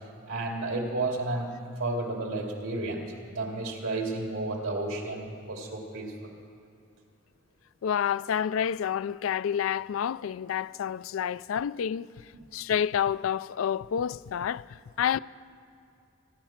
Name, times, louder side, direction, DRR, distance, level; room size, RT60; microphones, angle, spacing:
voice 1, 0.3-6.3, right 2 dB, 85° right, 2.4 m, -32 dB
voice 2, 7.8-12.1 12.5-14.7 15.0-15.2, left 8 dB, 85° left, 0.3 m, -29 dB
23.5 x 10.5 x 5.8 m
head